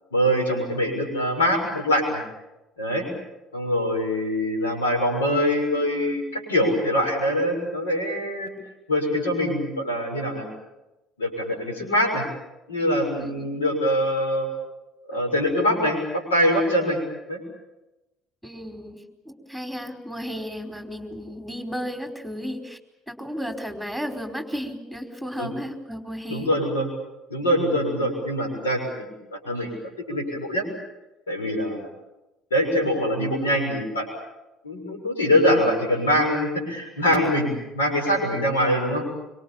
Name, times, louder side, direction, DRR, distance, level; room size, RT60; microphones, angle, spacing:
voice 1, 0.1-2.2 2.8-3.0 3.5-8.5 8.9-10.4 11.2-12.2 12.7-14.5 15.1-17.0 17.3-17.4 25.4-25.5 26.3-26.9 27.3-29.7 30.1-30.6 31.3-31.8 32.5-34.1 34.6-39.0, equal, 90° left, 3 dB, 6.7 m, -23 dB
voice 2, 15.1-15.5 18.4-22.8 23.1-26.5, equal, 5° left, 4 dB, 4.6 m, -34 dB
26.0 x 25.0 x 7.3 m, 0.99 s
hypercardioid pair, 60°, 0 cm